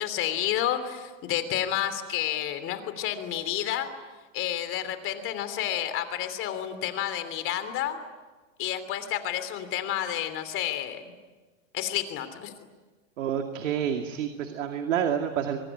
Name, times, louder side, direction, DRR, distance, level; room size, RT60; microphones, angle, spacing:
voice 1, 0.0-3.9 4.3-8.0 8.6-11.1 11.7-12.5, left 11 dB, 35° left, 10 dB, 3.2 m, -30 dB
voice 2, 13.2-15.6, right 9 dB, 75° right, 5 dB, 2.4 m, -28 dB
24.5 x 23.0 x 10.0 m, 1.3 s
hypercardioid pair, 135°, 38 cm